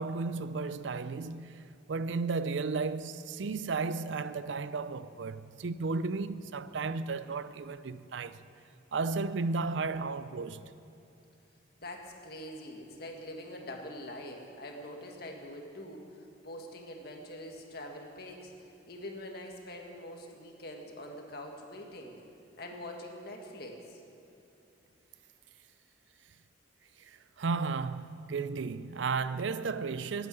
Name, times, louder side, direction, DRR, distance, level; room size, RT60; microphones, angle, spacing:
voice 1, 0.0-8.4 8.9-10.7 27.0-30.3, right 4 dB, 75° right, 0.5 m, -34 dB
voice 2, 11.8-18.5 18.9-22.2 22.6-24.0, left 1 dB, 55° left, 1.9 m, -44 dB
13.0 x 9.3 x 9.2 m
head